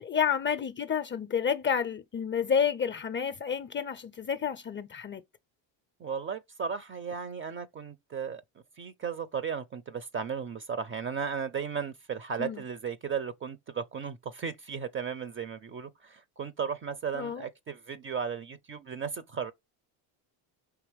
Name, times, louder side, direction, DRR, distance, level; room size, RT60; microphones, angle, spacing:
voice 1, 0.0-5.2 12.4-12.6 17.1-17.4, left 7 dB, 25° left, 0.4 m, -30 dB
voice 2, 6.0-8.4 8.8-19.5, right 6 dB, 30° right, 0.5 m, -35 dB
4.6 x 2.9 x 3.3 m
supercardioid pair, 95°, 46 cm